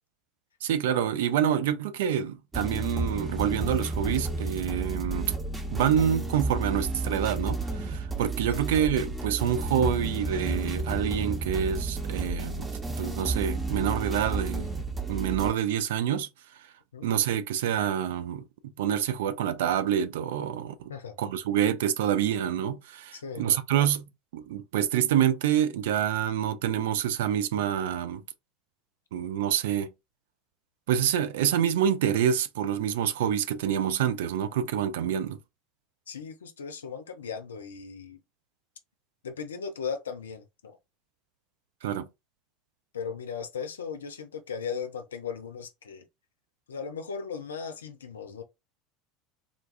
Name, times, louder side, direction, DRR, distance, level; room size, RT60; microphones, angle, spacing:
voice 1, 0.6-5.3 5.7-12.7 13.0-14.7 15.1-16.3 17.0-20.9 21.2-28.2 29.1-29.9 30.9-35.4 41.8-42.1, right 9 dB, 65° right, 0.4 m, -27 dB
sound 1, 2.5-15.5, right 2 dB, 15° right, 0.8 m, -32 dB
voice 2, 23.1-23.6 36.1-38.2 39.2-40.8 42.9-46.1 46.7-48.4, left 6 dB, 75° left, 0.5 m, -37 dB
3.7 x 2.3 x 2.5 m
figure-of-eight pair, 75°, 0 cm